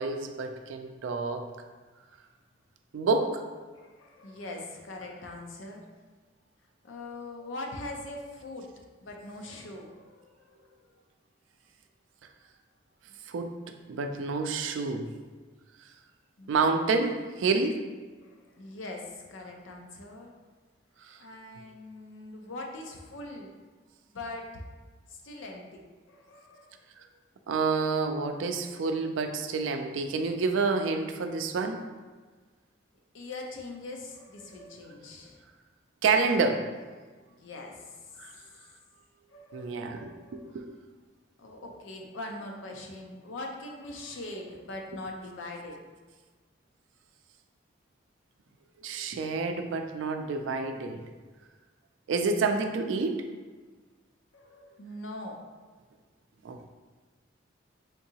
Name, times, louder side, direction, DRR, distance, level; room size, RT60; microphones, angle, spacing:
voice 1, 0.0-1.5 2.9-3.4 13.3-13.5 13.9-15.0 16.5-17.8 21.1-21.2 27.5-31.8 36.0-36.6 38.2-38.3 39.5-40.7 48.8-51.0 52.1-53.2 56.4-56.8, right 4 dB, 80° right, 6 dB, 0.3 m, -28 dB
voice 2, 3.7-5.8 6.8-8.7 9.0-10.8 16.4-16.7 18.2-20.3 21.2-23.5 24.1-24.6 25.1-25.8 26.1-27.2 29.0-29.1 33.1-35.4 37.3-38.2 39.3-40.7 41.4-45.8 54.3-55.4, left 2 dB, 80° left, 1 dB, 0.5 m, -42 dB
3.7 x 2.7 x 2.8 m, 1.4 s
head